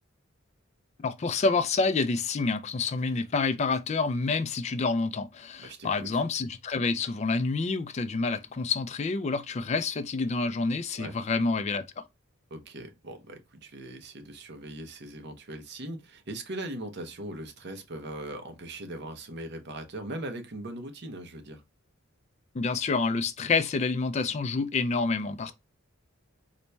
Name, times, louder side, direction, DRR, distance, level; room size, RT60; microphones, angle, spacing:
voice 1, 1.0-11.8 22.5-25.5, left 4 dB, 35° left, 0.3 m, -28 dB
voice 2, 5.6-6.2 10.9-11.2 12.5-21.6, right 1 dB, 55° right, 0.7 m, -40 dB
4.0 x 2.1 x 3.2 m
head